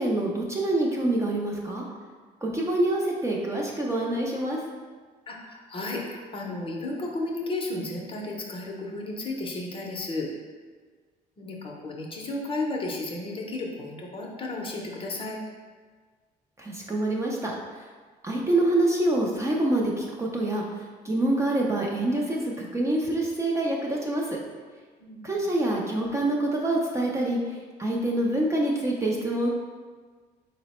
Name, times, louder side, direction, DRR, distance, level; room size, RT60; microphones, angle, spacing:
voice 1, 0.0-1.8 2.4-4.6 16.6-17.5 18.2-24.4 25.2-29.5, right 1 dB, 15° right, -2 dB, 0.4 m, -26 dB
voice 2, 5.3-10.3 11.4-15.4 25.0-25.4, left 2 dB, 30° left, 0 dB, 0.6 m, -33 dB
3.9 x 2.0 x 4.1 m, 1.5 s
cardioid pair, 110°, 17 cm